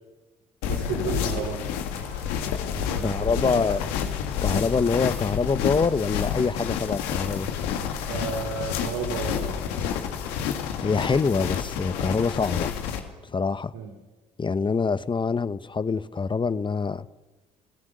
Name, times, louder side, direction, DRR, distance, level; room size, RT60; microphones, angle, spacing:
sound 1, 0.6-13.0, left 8 dB, 85° left, 2.1 m, -29 dB
voice 1, 0.7-1.6 1.9-2.4 2.7-3.8 8.1-9.6 13.7-13.9, right 5 dB, 85° right, 2.5 m, -33 dB
voice 2, 3.0-3.8 4.4-7.5 10.8-12.7 13.3-13.7 14.4-17.1, left 5 dB, 30° left, 0.9 m, -25 dB
28.5 x 16.5 x 6.7 m
supercardioid pair, 60°, 16 cm